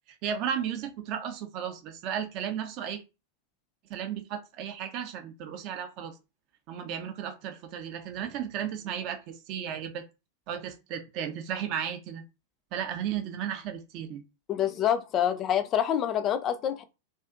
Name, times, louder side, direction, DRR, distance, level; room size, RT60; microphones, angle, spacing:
voice 1, 0.2-3.0 3.9-6.2 6.7-10.0 10.5-12.2 12.7-14.2, right 9 dB, 40° right, 0.4 m, -34 dB
voice 2, 14.5-16.8, left 10 dB, 30° left, 0.3 m, -26 dB
2.5 x 2.3 x 2.4 m
figure-of-eight pair, 90°, 0 cm